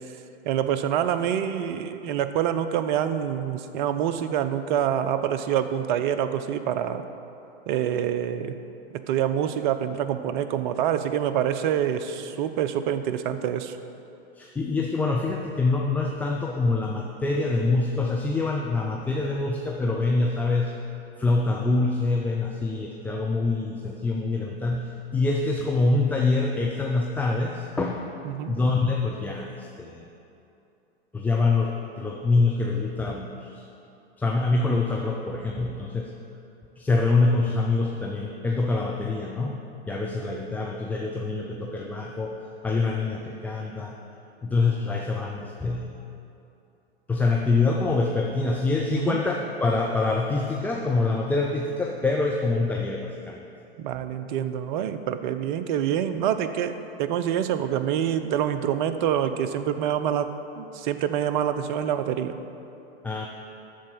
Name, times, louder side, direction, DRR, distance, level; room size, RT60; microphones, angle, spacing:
voice 1, 0.4-7.0 7.7-8.6 8.9-13.8 28.2-28.5 48.9-49.2 53.8-62.4, right 9 dB, 45° right, 10 dB, 0.7 m, -26 dB
voice 2, 14.3-20.7 21.2-28.1 28.5-30.1 31.1-33.6 34.2-36.1 36.8-39.6 39.9-44.0 44.4-45.9 47.1-53.5 63.0-63.3, left 3 dB, 5° left, 0 dB, 0.4 m, -25 dB
13.0 x 4.4 x 7.8 m, 2.8 s
hypercardioid pair, 105°, 32 cm